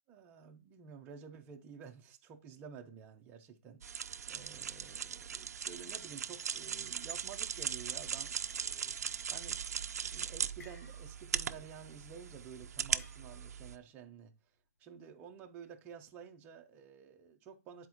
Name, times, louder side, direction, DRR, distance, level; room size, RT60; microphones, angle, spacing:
voice 1, 0.1-9.0 9.3-9.7 10.1-14.3 14.8-17.9, right 7 dB, 20° right, 0.7 m, -51 dB
sound 1, 3.8-13.8, right 7 dB, 75° right, 0.5 m, -39 dB
sound 2, 10.6-11.4 11.7-12.0 13.0-13.7, left 2 dB, 80° left, 1.4 m, -59 dB
9.2 x 4.3 x 3.1 m
hypercardioid pair, 160°, 9 cm